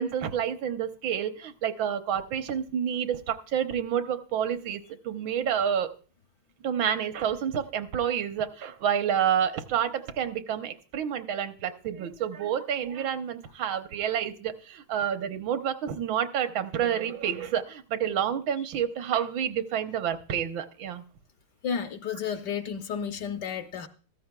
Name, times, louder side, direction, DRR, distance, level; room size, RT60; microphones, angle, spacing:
voice 1, 0.0-5.9 6.6-21.0, right 9 dB, 75° right, 9 dB, 1.6 m, -29 dB
voice 2, 21.6-23.9, left 7 dB, 65° left, 8 dB, 1.2 m, -32 dB
14.5 x 13.5 x 2.2 m, 0.38 s
omnidirectional pair, 2.2 m